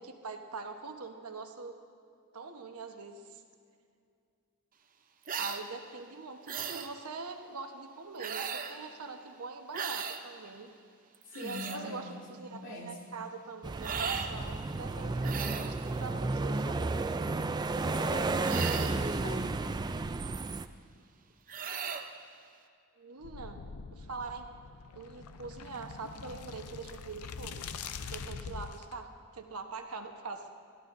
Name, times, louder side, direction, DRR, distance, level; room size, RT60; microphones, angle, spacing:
voice 1, 0.0-1.8 2.3-3.4 5.4-10.7 11.3-16.9 23.0-23.6 23.9-24.4 24.9-27.7 28.1-29.1 29.3-30.5, right 4 dB, 80° right, 5 dB, 1.1 m, -43 dB
sound 1, 5.3-5.6 6.5-6.9 8.2-8.8 9.7-10.2 11.1-11.8 13.8-14.3 15.2-15.8 18.4-19.1 21.5-22.1, right 6 dB, 40° right, 0.7 m, -36 dB
voice 2, 11.3-13.0 17.7-19.5, left 1 dB, 60° left, -3 dB, 2.8 m, -42 dB
sound 2, 13.6-20.7, right 3 dB, 20° right, 0.3 m, -32 dB
sound 3, 23.2-28.9, left 5 dB, 80° left, 0.6 m, -44 dB
23.0 x 13.5 x 2.7 m, 2.4 s
head